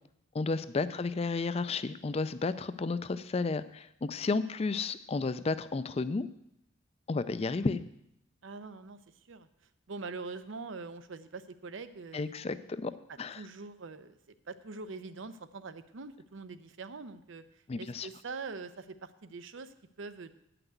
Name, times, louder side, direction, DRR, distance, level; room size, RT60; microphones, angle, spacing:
voice 1, 0.3-6.3 7.1-7.8 12.1-12.9 13.2-13.4 17.7-18.1, left 3 dB, 30° left, 14 dB, 0.4 m, -32 dB
voice 2, 8.4-9.0 9.3-9.5 9.9-12.7 13.1-14.2 14.5-17.4 17.8-20.3, right 4 dB, 75° right, 12 dB, 0.6 m, -44 dB
9.1 x 5.9 x 8.0 m, 0.80 s
head